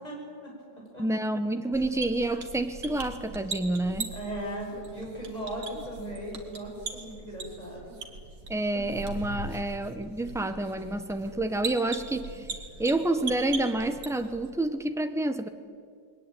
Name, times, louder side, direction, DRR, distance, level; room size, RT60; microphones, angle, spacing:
voice 1, 0.0-1.0 4.1-8.0 8.7-8.9 9.5-9.6, right 1 dB, 20° left, -3 dB, 7.3 m, -38 dB
voice 2, 1.0-4.1 8.5-12.5 12.8-15.5, right 2 dB, ahead, 8 dB, 0.7 m, -28 dB
sound 1, 1.7-14.5, right 4 dB, 75° right, 2.6 m, -40 dB
21.5 x 19.5 x 9.1 m, 2.2 s
omnidirectional pair, 1.9 m